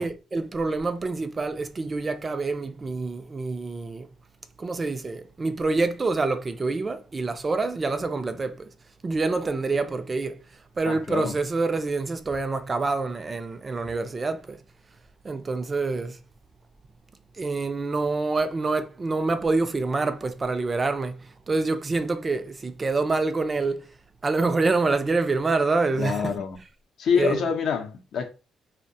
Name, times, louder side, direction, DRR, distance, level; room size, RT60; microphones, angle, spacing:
voice 1, 0.0-4.1 4.6-8.7 9.0-10.5 10.8-14.6 15.2-16.2 17.4-23.9 24.2-26.4 27.1-27.5, right 3 dB, 30° right, 0.3 m, -26 dB
voice 2, 10.9-11.3 25.9-26.6 27.0-28.3, left 6 dB, 70° left, 0.5 m, -26 dB
2.5 x 2.1 x 2.6 m
cardioid pair, 90°, 0 cm